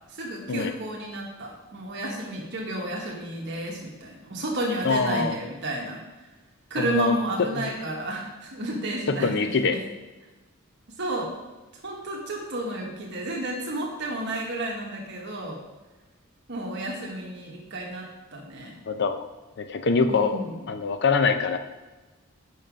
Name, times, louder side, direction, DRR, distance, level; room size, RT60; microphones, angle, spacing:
voice 1, 0.1-6.0 6.7-9.5 11.0-11.3 11.8-15.6 16.5-18.8 20.1-20.5, right 1 dB, 55° right, -1 dB, 1.2 m, -31 dB
voice 2, 4.8-5.4 6.8-7.6 9.1-9.8 18.9-19.3 19.6-20.4 20.7-21.6, left 4 dB, 55° left, 9 dB, 0.5 m, -24 dB
5.6 x 5.5 x 5.0 m, 1.2 s
head